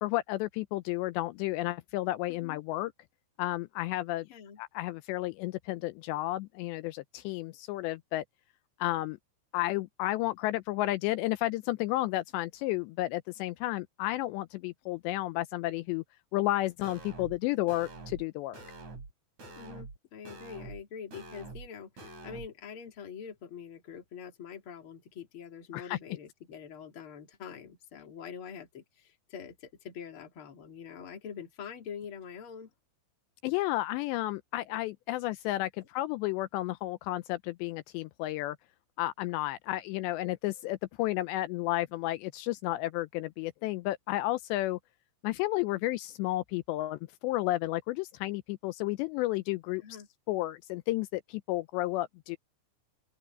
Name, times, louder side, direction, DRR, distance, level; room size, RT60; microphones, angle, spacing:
voice 1, 0.0-2.9 3.4-4.3 4.6-8.2 8.8-9.2 9.5-16.0 16.3-18.6 25.7-26.0 33.4-38.6 39.0-44.8 45.2-49.8 50.3-52.4, left 17 dB, 80° left, 2.8 m, -32 dB
voice 2, 2.3-2.6 4.3-4.6 19.6-32.7 35.8-35.9 49.8-50.1, left 7 dB, 35° left, 2.5 m, -45 dB
sound 1, 16.8-17.4 17.7-18.2 18.5-19.1 19.4-20.0 20.2-20.8 21.1-21.7 22.0-22.5, right 3 dB, 40° right, 5.8 m, -45 dB
open air
omnidirectional pair, 5.2 m